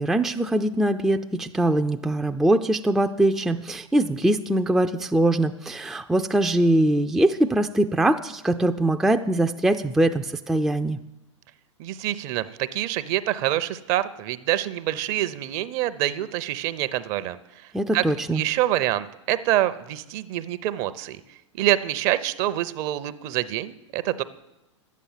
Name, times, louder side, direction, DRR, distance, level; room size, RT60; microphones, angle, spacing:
voice 1, 0.0-11.0 17.7-18.4, right 1 dB, 5° right, 6 dB, 0.4 m, -22 dB
voice 2, 11.8-21.2 21.5-24.2, right 14 dB, 45° right, 14 dB, 0.7 m, -26 dB
11.5 x 8.4 x 7.4 m, 0.98 s
hypercardioid pair, 100°, 16 cm